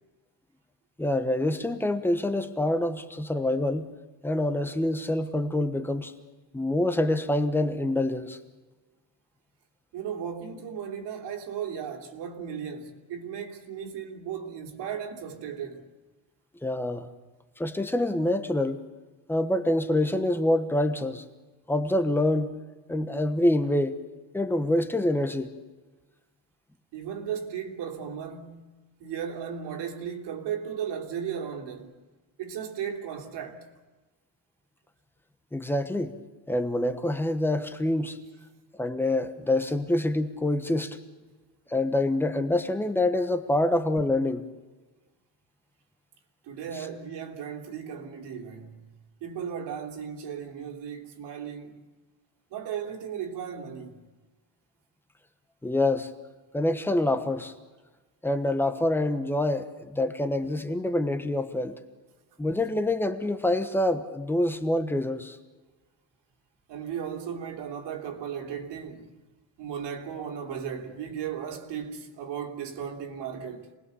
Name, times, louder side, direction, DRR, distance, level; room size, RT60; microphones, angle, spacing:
voice 1, 1.0-3.9 4.2-6.1 6.5-8.4 16.6-17.1 17.6-18.8 19.3-21.2 21.7-22.6 22.9-24.0 24.3-25.5 35.5-36.2 36.5-38.2 38.8-41.0 41.7-44.4 55.6-56.1 56.5-57.5 58.2-61.8 62.4-65.4, left 1 dB, 5° left, 1.1 m, -26 dB
voice 2, 9.9-15.9 26.9-28.6 29.0-32.0 32.4-33.6 46.4-48.9 49.2-51.8 52.5-54.0 66.7-69.2 69.6-73.7, right 8 dB, 65° right, 3.0 m, -36 dB
27.5 x 20.0 x 7.0 m
cardioid pair, 155°, 45 cm